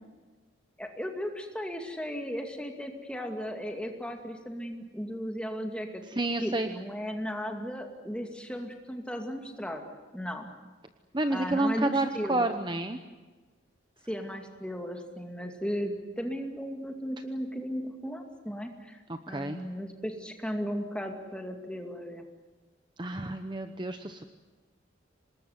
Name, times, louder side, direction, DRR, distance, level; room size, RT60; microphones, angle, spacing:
voice 1, 0.8-6.0 6.4-9.8 10.1-10.5 11.3-12.5 14.1-22.2, equal, 5° left, 3 dB, 2.4 m, -36 dB
voice 2, 6.2-6.7 11.1-13.0 19.1-19.6 23.0-24.2, right 2 dB, 25° right, 7 dB, 0.9 m, -29 dB
26.5 x 20.0 x 9.6 m, 1.3 s
head